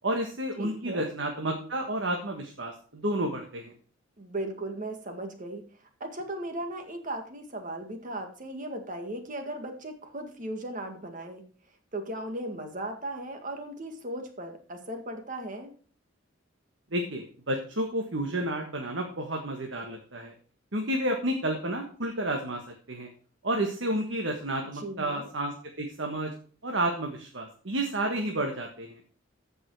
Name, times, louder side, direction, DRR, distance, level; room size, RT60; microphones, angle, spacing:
voice 1, 0.0-3.7 16.9-20.3 20.7-22.6 22.9-23.1 23.4-26.3 26.6-29.0, right 1 dB, 70° right, 2 dB, 1.5 m, -31 dB
voice 2, 0.6-1.1 4.2-5.6 6.0-11.4 11.9-15.7 24.7-25.3, right 1 dB, 45° right, 5 dB, 1.9 m, -37 dB
14.5 x 5.5 x 4.7 m, 0.43 s
head